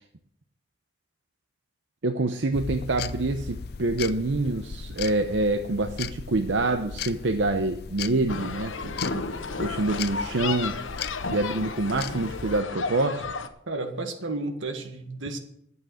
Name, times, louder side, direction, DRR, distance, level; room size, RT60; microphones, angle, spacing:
voice 1, 2.0-9.3 9.6-10.8 11.3-13.2, right 2 dB, 70° right, 6 dB, 0.8 m, -26 dB
sound 1, 2.5-12.6, left 6 dB, 55° left, 0.5 m, -38 dB
sound 2, 8.3-13.5, left 4 dB, 90° left, 1.1 m, -33 dB
voice 2, 13.7-15.4, right 2 dB, 90° right, 5 dB, 1.9 m, -32 dB
12.0 x 8.2 x 6.4 m, 0.73 s
head